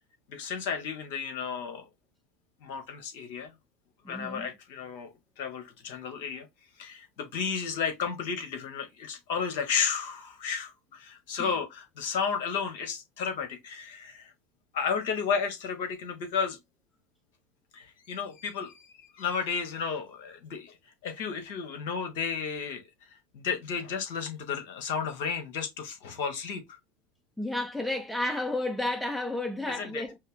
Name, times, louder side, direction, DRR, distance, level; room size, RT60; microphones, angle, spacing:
voice 1, 0.3-1.9 2.6-3.5 4.1-6.5 6.8-14.3 14.7-16.6 17.7-20.8 21.0-22.8 23.3-26.6 29.7-30.0, left 6 dB, 65° left, 1.4 m, -33 dB
voice 2, 4.0-4.5 11.4-11.5 27.4-30.2, left 1 dB, 5° left, 0.7 m, -32 dB
5.3 x 2.0 x 3.9 m
hypercardioid pair, 85°, 0 cm